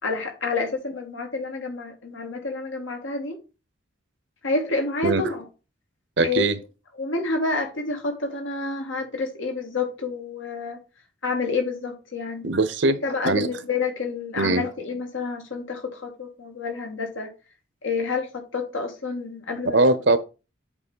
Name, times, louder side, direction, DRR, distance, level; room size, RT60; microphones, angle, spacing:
voice 1, 0.0-3.4 4.4-5.4 6.2-6.5 7.0-10.8 11.2-12.5 13.0-17.3 17.8-19.8, left 4 dB, 80° left, 2.0 m, -29 dB
voice 2, 6.2-6.6 12.4-13.0 13.2-13.5 14.4-14.7 19.6-20.2, right 2 dB, 65° right, 0.8 m, -20 dB
8.2 x 3.2 x 5.5 m
head